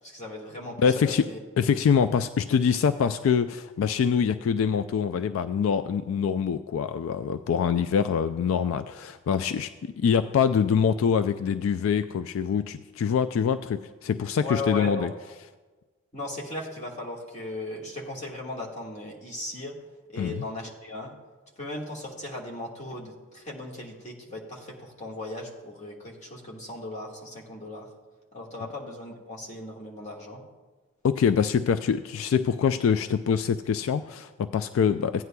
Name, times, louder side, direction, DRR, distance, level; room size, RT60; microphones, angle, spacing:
voice 1, 0.0-1.4 14.4-15.1 16.1-19.8 20.1-21.1 21.6-27.9 28.3-30.4, left 2 dB, 35° left, -3 dB, 1.6 m, -37 dB
voice 2, 0.8-1.3 1.6-15.1 20.2-20.4 31.0-35.2, left 7 dB, 80° left, 11 dB, 0.3 m, -24 dB
15.5 x 9.4 x 2.2 m, 1.3 s
head